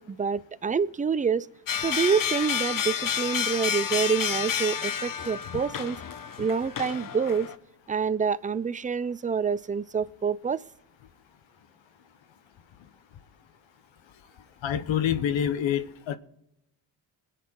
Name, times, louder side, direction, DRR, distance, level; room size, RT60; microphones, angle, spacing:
voice 1, 0.0-1.5 1.8-6.0 6.4-7.5 7.9-10.6, right 6 dB, 15° right, 0.5 m, -27 dB
sound 1, 1.7-7.6, left 8 dB, 45° left, 1.0 m, -30 dB
voice 2, 14.6-16.2, left 9 dB, 75° left, 1.2 m, -27 dB
22.0 x 8.5 x 4.6 m
supercardioid pair, 60°, 47 cm